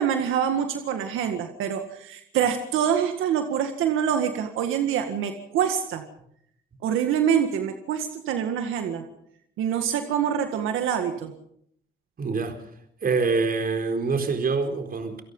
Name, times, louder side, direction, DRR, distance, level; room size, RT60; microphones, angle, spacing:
voice 1, 0.0-6.0 6.8-9.0 9.6-11.3, right 8 dB, 90° right, 1.9 m, -25 dB
voice 2, 12.2-12.6 13.0-15.2, right 4 dB, 45° right, 4.3 m, -25 dB
28.0 x 18.5 x 5.6 m
cardioid pair, 90°, 20 cm